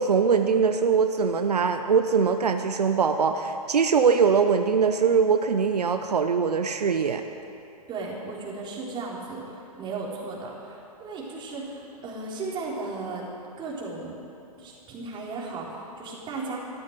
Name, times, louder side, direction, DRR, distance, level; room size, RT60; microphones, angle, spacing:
voice 1, 0.0-7.2, right 6 dB, 80° right, 7 dB, 0.9 m, -22 dB
voice 2, 7.9-13.2 13.6-14.2 14.6-16.6, right 3 dB, 25° right, -4 dB, 4.0 m, -35 dB
14.0 x 12.5 x 8.1 m, 2.7 s
figure-of-eight pair, 120°, 20 cm